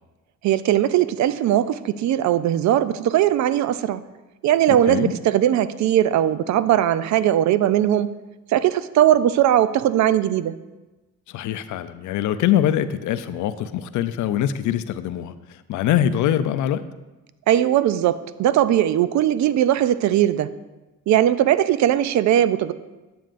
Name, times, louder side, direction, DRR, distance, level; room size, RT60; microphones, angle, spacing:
voice 1, 0.4-4.0 4.4-8.1 8.5-10.5 17.5-20.5 21.1-22.7, right 11 dB, 65° right, 14 dB, 0.4 m, -19 dB
voice 2, 4.7-5.1 11.3-16.8, left 11 dB, 75° left, 12 dB, 0.5 m, -23 dB
9.0 x 7.7 x 2.5 m, 1.1 s
cardioid pair, 90°, 30 cm